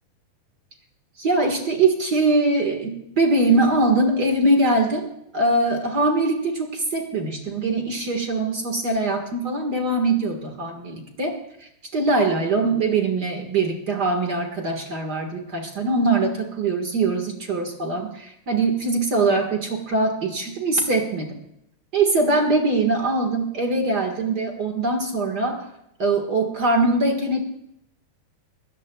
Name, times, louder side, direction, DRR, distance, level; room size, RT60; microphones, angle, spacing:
voice 1, 1.2-5.1 5.3-21.4 21.9-25.6 26.0-27.4, right 2 dB, 50° right, 3 dB, 1.2 m, -22 dB
23.0 x 17.0 x 2.4 m, 0.80 s
omnidirectional pair, 4.5 m